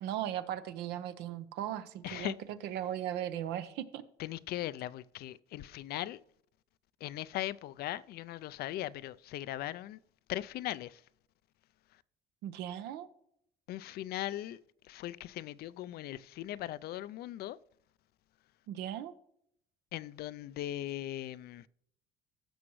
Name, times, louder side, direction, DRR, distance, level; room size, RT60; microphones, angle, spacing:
voice 1, 0.0-2.3 2.6-4.0 12.4-13.1 18.7-19.1, right 11 dB, 85° right, 0.8 m, -37 dB
voice 2, 2.0-2.4 4.2-6.2 7.0-10.0 10.3-11.0 13.7-14.6 14.9-17.6 19.9-21.7, left 14 dB, 70° left, 0.4 m, -39 dB
15.5 x 6.1 x 3.1 m
cardioid pair, 110°, 17 cm